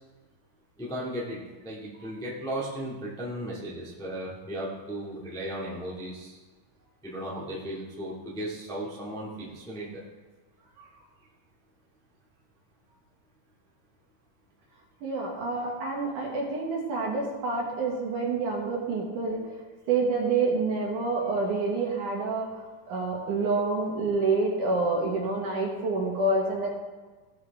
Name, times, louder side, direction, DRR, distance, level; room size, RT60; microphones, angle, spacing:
voice 1, 0.8-6.4 7.0-10.0, right 1 dB, ahead, -6 dB, 1.1 m, -36 dB
voice 2, 15.0-19.4 19.9-26.7, right 3 dB, 60° right, -2 dB, 2.9 m, -28 dB
17.5 x 6.2 x 3.6 m, 1.3 s
omnidirectional pair, 4.4 m